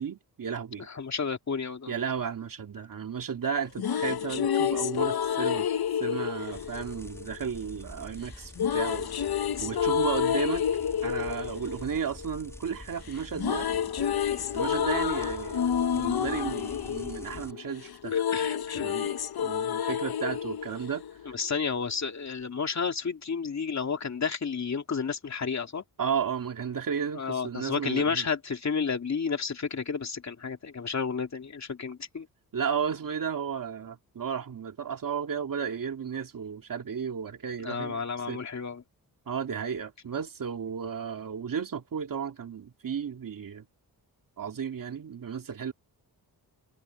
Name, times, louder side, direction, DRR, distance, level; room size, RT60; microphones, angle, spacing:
voice 1, 0.0-0.9 1.9-5.7 6.0-9.1 9.6-10.6 11.0-13.7 14.5-15.7 15.9-18.1 18.8-21.0 26.0-28.3 32.5-38.0 38.3-38.4 39.3-43.6 44.4-45.7, right 7 dB, 60° right, 2.5 m, -33 dB
voice 2, 0.9-1.9 18.1-18.9 21.3-25.8 27.1-32.3 37.6-38.8, left 5 dB, 45° left, 2.8 m, -31 dB
sound 1, 3.5-7.7 8.6-12.8 13.1-21.6, left 8 dB, 70° left, 1.3 m, -29 dB
sound 2, 6.5-17.5, left 1 dB, 5° left, 3.1 m, -47 dB
wide cardioid pair, 115°, 38 cm